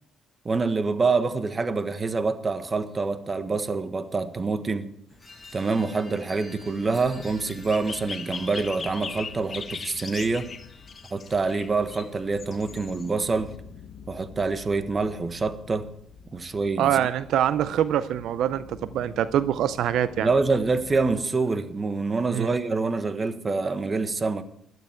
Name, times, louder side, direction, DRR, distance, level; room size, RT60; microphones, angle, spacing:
voice 1, 0.4-4.9 5.5-10.5 11.1-13.5 14.1-15.9 16.3-17.0 20.2-24.4, right 4 dB, 30° right, 1.3 m, -26 dB
sound 1, 5.1-13.5, left 5 dB, 45° left, 1.6 m, -40 dB
Ambience Wind Chimes B, 5.2-12.9, left 2 dB, 10° left, 5.5 m, -51 dB
sound 2, 6.8-21.2, left 6 dB, 65° left, 1.4 m, -48 dB
voice 2, 16.8-20.3 22.3-22.5, right 10 dB, 80° right, 0.5 m, -24 dB
16.5 x 12.0 x 4.5 m
cardioid pair, 90°, 0 cm